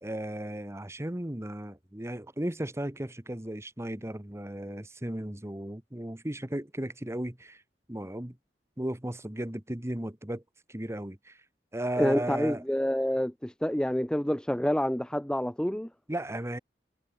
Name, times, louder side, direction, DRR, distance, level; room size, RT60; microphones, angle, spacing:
voice 1, 0.0-7.6 7.9-8.4 8.8-10.4 10.7-11.4 11.7-12.6 16.1-16.6, right 1 dB, 15° right, 1.4 m, -35 dB
voice 2, 12.0-15.9, equal, 5° left, 0.7 m, -28 dB
head